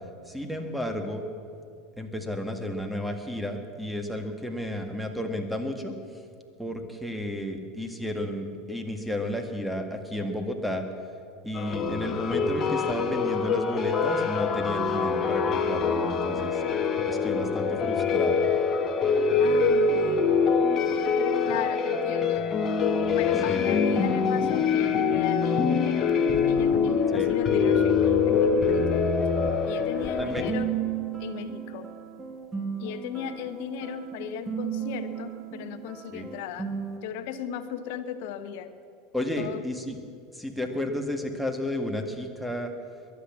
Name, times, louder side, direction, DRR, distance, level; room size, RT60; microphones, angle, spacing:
voice 1, 0.3-1.2 2.0-6.0 6.6-10.8 11.4-16.6 17.1-18.4 23.5-23.7 27.1-27.3 30.2-30.5 36.1-36.3 39.1-40.0 40.3-42.7, left 1 dB, ahead, 5 dB, 1.9 m, -32 dB
sound 1, 11.5-30.5, left 5 dB, 35° left, 1.3 m, -24 dB
voice 2, 19.4-20.3 21.4-22.5 23.1-26.1 26.5-28.8 29.7-30.7 31.2-31.9 32.8-36.7 37.0-38.7 39.4-39.6, left 8 dB, 60° left, 10 dB, 1.0 m, -36 dB
sound 2, 30.0-37.0, right 8 dB, 25° right, 1.8 m, -35 dB
22.0 x 8.5 x 7.4 m, 2.4 s
figure-of-eight pair, 80°, 0 cm